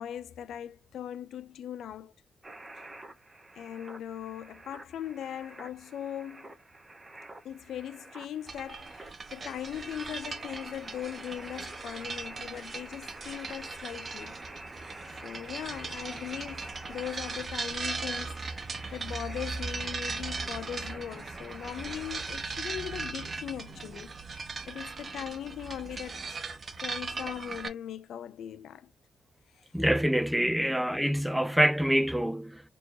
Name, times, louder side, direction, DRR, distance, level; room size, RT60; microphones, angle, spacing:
voice 1, 0.0-2.1 3.6-6.5 7.4-14.4 15.2-24.4 24.7-26.5 26.8-28.9 29.6-29.7, left 10 dB, 80° left, 0.4 m, -40 dB
sound 1, 2.4-22.3, right 2 dB, 20° right, 1.0 m, -48 dB
sound 2, 8.5-27.7, right 4 dB, 35° right, 0.7 m, -39 dB
voice 2, 29.7-32.6, equal, 5° right, 0.3 m, -26 dB
4.4 x 2.9 x 2.5 m
cardioid pair, 125°, 0 cm